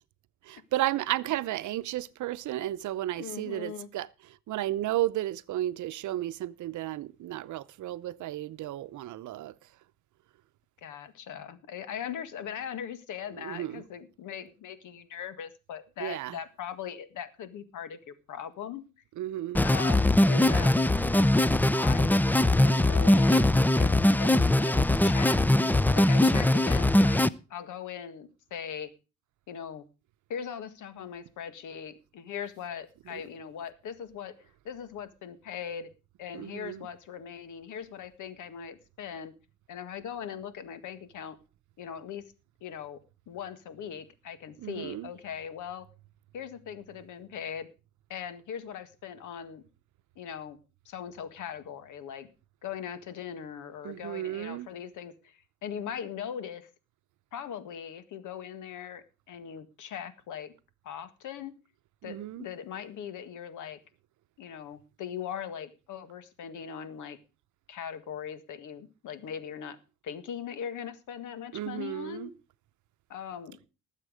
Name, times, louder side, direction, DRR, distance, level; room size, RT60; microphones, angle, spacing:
voice 1, 0.4-9.5 13.4-13.8 16.0-16.4 19.2-19.6 20.3-20.7 33.1-33.2 36.3-36.9 44.6-45.1 53.8-54.7 62.0-62.5 71.5-72.3, right 14 dB, 75° right, 0.7 m, -33 dB
voice 2, 3.2-3.9 10.8-18.8 19.6-20.8 21.1-21.3 21.8-25.4 25.9-27.2 27.5-28.9 29.5-29.9 30.3-34.4 34.7-35.9 36.2-39.3 39.7-41.4 41.8-42.2 42.6-43.0 43.3-45.9 46.3-47.7 48.1-49.6 50.2-50.6 50.9-52.3 52.6-56.7 57.3-60.5 60.8-61.5 62.0-63.8 64.4-67.2 67.7-69.8 70.0-72.3 73.1-73.6, left 8 dB, 80° left, 1.8 m, -40 dB
sound 1, 19.5-27.3, left 1 dB, 5° left, 0.6 m, -22 dB
19.0 x 7.5 x 5.0 m
cardioid pair, 90°, 30 cm